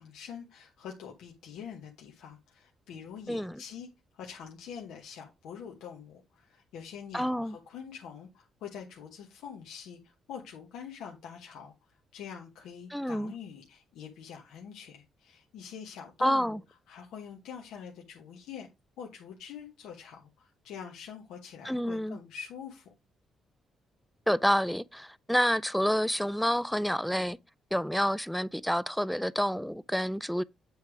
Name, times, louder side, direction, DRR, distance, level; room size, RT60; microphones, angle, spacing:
voice 1, 0.0-16.6 16.9-18.7 19.0-22.9, left 7 dB, 85° left, 1.1 m, -45 dB
voice 2, 3.3-3.6 7.1-7.5 12.9-13.3 16.2-16.6 21.6-22.2 24.3-27.4 27.7-30.4, equal, ahead, 0.3 m, -28 dB
8.1 x 3.3 x 4.7 m
cardioid pair, 90°, 0 cm